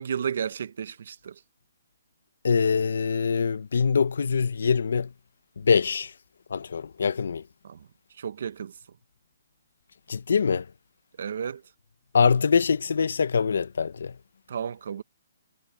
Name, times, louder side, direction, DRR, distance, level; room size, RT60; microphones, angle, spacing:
voice 1, 0.0-1.4 7.6-7.9 8.2-8.7 11.2-11.6 14.5-15.0, right 7 dB, 45° right, 0.7 m, -32 dB
voice 2, 2.4-5.1 5.6-6.1 6.5-7.4 10.1-10.7 12.1-14.2, left 5 dB, 60° left, 0.6 m, -24 dB
hypercardioid pair, 180°, 0 cm